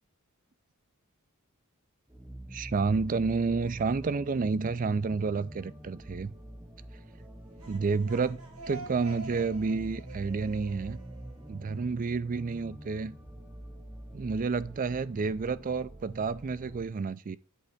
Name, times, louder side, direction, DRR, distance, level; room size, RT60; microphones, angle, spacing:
sound 1, 2.1-16.8, right 1 dB, 10° right, 0.9 m, -46 dB
voice 1, 2.5-6.3 7.7-8.4 8.7-11.0 11.5-13.1 14.1-17.4, right 4 dB, 40° right, 0.4 m, -30 dB
sound 2, 7.4-12.1, right 3 dB, 80° right, 4.5 m, -47 dB
8.5 x 3.3 x 6.4 m
head